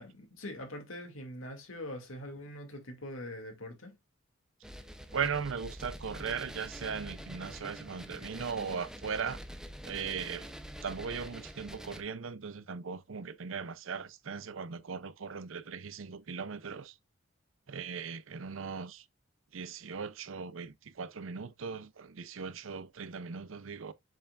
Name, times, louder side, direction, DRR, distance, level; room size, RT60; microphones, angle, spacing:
voice 1, 0.0-4.0, left 1 dB, 85° left, 2.5 m, -43 dB
sound 1, 4.6-12.0, equal, 5° right, 0.6 m, -46 dB
voice 2, 5.1-9.4 9.8-10.5 10.8-16.9 17.7-19.1 19.5-23.9, right 6 dB, 75° right, 0.6 m, -38 dB
7.1 x 5.6 x 2.4 m
head